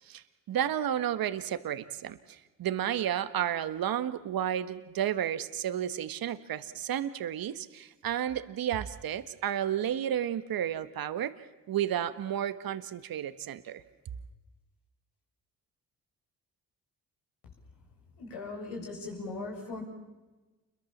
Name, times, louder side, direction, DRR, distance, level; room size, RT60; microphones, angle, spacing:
voice 1, 0.1-11.3 11.7-13.8, right 10 dB, 65° right, 12 dB, 1.5 m, -32 dB
voice 2, 18.2-19.8, left 3 dB, 85° left, 0 dB, 7.9 m, -39 dB
29.0 x 23.0 x 7.4 m, 1.2 s
supercardioid pair, 60°, 38 cm